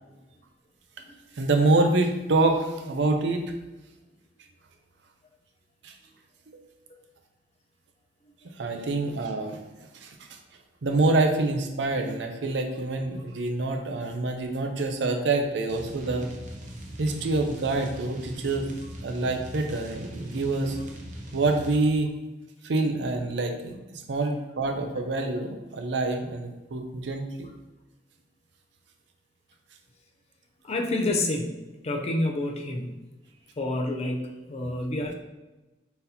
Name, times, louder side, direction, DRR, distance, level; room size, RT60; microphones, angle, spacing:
voice 1, 1.4-3.4 5.8-5.9 6.5-6.6 8.5-9.6 9.9-10.4 10.8-16.3 17.0-18.7 19.0-20.8 21.3-22.1 22.6-27.5, right 2 dB, 80° right, 4 dB, 0.6 m, -26 dB
sound 1, 15.7-21.8, right 1 dB, 45° right, 0.7 m, -40 dB
voice 2, 30.6-31.6 31.8-33.0 33.6-35.1, left 2 dB, 35° left, 2 dB, 0.5 m, -28 dB
4.0 x 4.0 x 2.8 m, 1.1 s
head